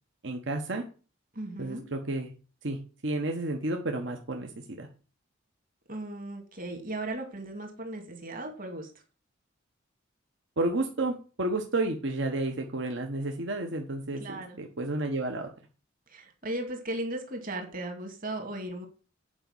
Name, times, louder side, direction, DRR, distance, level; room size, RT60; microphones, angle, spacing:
voice 1, 0.2-0.8 1.6-2.3 2.6-2.8 3.0-4.9 10.6-15.5, right 2 dB, 65° right, 3 dB, 1.2 m, -31 dB
voice 2, 1.3-1.8 5.9-8.9 14.2-14.6 16.1-18.9, right 1 dB, 45° right, 4 dB, 2.3 m, -36 dB
8.9 x 5.1 x 7.1 m, 0.36 s
head